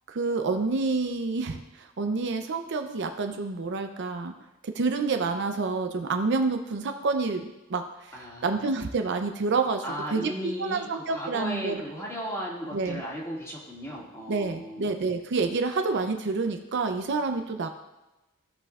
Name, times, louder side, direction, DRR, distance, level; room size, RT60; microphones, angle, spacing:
voice 1, 0.1-4.3 4.6-7.8 8.4-9.8 10.1-11.8 12.7-13.0 14.3-17.7, right 4 dB, 55° right, 6 dB, 0.6 m, -28 dB
voice 2, 8.1-8.5 9.8-15.0, equal, 15° left, -4 dB, 2.0 m, -36 dB
16.0 x 5.4 x 2.4 m, 1.0 s
head